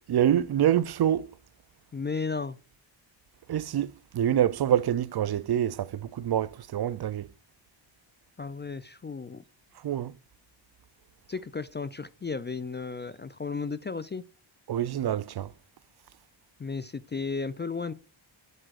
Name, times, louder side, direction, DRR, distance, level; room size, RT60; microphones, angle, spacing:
voice 1, 0.1-1.3 3.5-7.3 9.8-10.1 14.7-15.5, right 10 dB, 55° right, 0.5 m, -26 dB
voice 2, 1.9-2.6 8.4-9.4 11.3-14.3 16.6-17.9, left 4 dB, 25° left, 0.3 m, -34 dB
7.8 x 7.6 x 2.4 m
cardioid pair, 80°, 49 cm